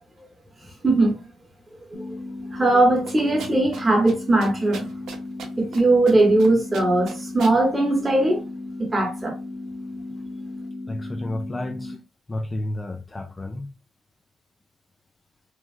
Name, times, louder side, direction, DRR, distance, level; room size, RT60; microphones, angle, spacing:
voice 1, 0.8-1.2 1.9-2.2 2.5-4.9 5.6-8.5 8.8-9.4, right 2 dB, 20° right, 1.0 m, -20 dB
sound 1, 1.9-11.9, left 2 dB, 60° right, 0.9 m, -35 dB
sound 2, 3.1-3.8 4.1-4.2 4.4-5.8 6.1-6.5 6.7-7.6, right 6 dB, 80° right, 0.6 m, -38 dB
voice 2, 10.9-12.0 12.3-13.7, left 1 dB, 20° left, 0.3 m, -31 dB
3.0 x 2.3 x 2.3 m
cardioid pair, 90°, 0 cm